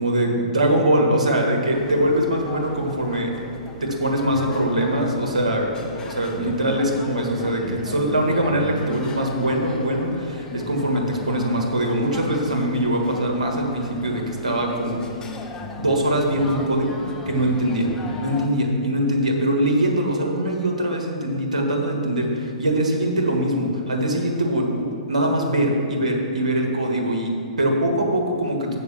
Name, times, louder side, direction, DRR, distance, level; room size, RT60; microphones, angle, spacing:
voice 1, 0.0-3.3 3.8-5.8 6.0-15.0 15.8-17.9 18.2-28.8, right 1 dB, 85° right, 1 dB, 1.5 m, -22 dB
sound 1, 1.7-18.5, left 4 dB, 20° left, 0.7 m, -37 dB
6.7 x 5.4 x 6.9 m, 2.3 s
figure-of-eight pair, 120°, 4 cm